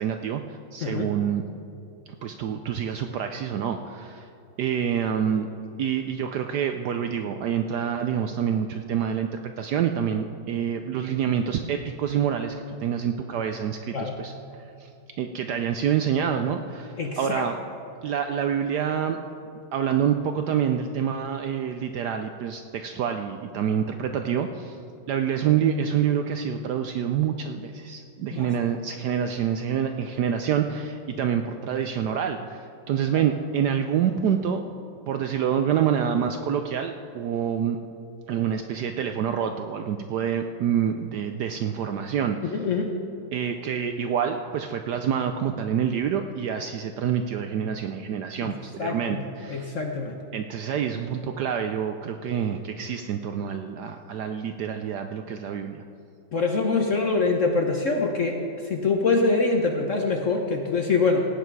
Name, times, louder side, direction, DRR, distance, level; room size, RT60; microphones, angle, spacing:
voice 1, 0.0-1.4 2.2-4.3 4.6-5.5 5.8-14.9 15.2-17.6 18.0-19.2 19.7-24.8 25.1-34.6 35.1-37.8 38.3-42.6 43.3-49.7 50.3-55.8, right 8 dB, 70° right, 6 dB, 1.0 m, -27 dB
voice 2, 17.0-17.4 28.3-28.5 33.1-33.2 42.4-42.9 48.4-48.5 48.8-49.2 49.5-50.2 56.3-58.4 58.7-61.3, left 3 dB, 50° left, 2 dB, 1.0 m, -24 dB
17.5 x 8.9 x 4.6 m, 2.6 s
omnidirectional pair, 2.2 m